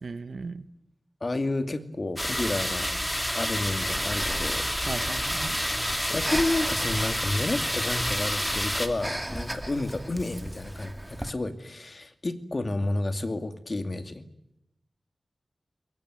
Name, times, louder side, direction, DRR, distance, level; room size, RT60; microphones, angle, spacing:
voice 1, 0.0-0.7 4.9-5.6, right 4 dB, 70° right, 12 dB, 1.3 m, -36 dB
voice 2, 1.2-3.1 3.3-4.6 6.1-14.3, left 2 dB, 40° left, 8 dB, 2.3 m, -30 dB
sound 1, 2.2-8.9, equal, 5° left, 2.7 m, -29 dB
Breathing, 3.8-11.3, right 1 dB, 10° right, 1.9 m, -37 dB
23.0 x 23.0 x 9.4 m, 0.84 s
wide cardioid pair, 110°, 0 cm